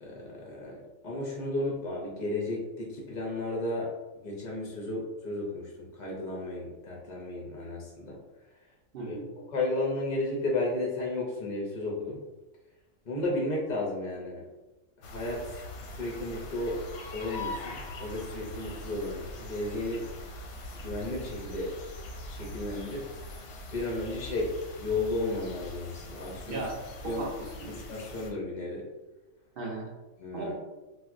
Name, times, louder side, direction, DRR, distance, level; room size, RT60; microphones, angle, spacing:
voice 1, 0.0-4.0 4.2-8.2 9.1-9.2 9.5-12.2 13.0-14.5 15.0-16.9 17.1-20.1 20.7-21.8 22.3-23.1 23.7-26.7 27.0-27.2 27.7-28.9 30.2-30.5, left 2 dB, 60° left, -3 dB, 0.5 m, -33 dB
voice 2, 8.9-9.3 26.5-26.8 27.0-27.7 29.6-29.9 30.3-30.5, right 2 dB, 60° right, -2 dB, 0.6 m, -36 dB
sound 1, 15.0-28.3, left 1 dB, 90° left, 1.0 m, -42 dB
4.1 x 2.0 x 2.4 m, 1.1 s
omnidirectional pair, 1.4 m